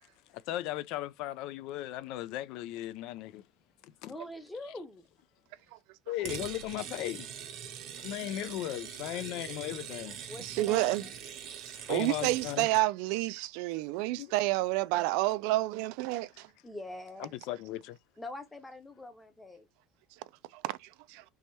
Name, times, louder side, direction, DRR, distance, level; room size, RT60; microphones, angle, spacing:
voice 1, 0.5-3.4 3.8-4.1 6.1-7.3 8.0-10.2 11.7-12.7 14.2-14.3 17.2-18.0, left 14 dB, 55° left, 0.3 m, -37 dB
voice 2, 4.0-5.1 10.2-11.1 16.6-17.5 18.2-19.7, left 1 dB, 5° left, 0.8 m, -44 dB
sound 1, 6.2-12.8, right 8 dB, 40° right, 0.7 m, -43 dB
voice 3, 10.4-11.0 11.9-16.5 20.5-21.2, right 18 dB, 70° right, 0.3 m, -30 dB
3.5 x 3.1 x 4.1 m
cardioid pair, 165°, 0 cm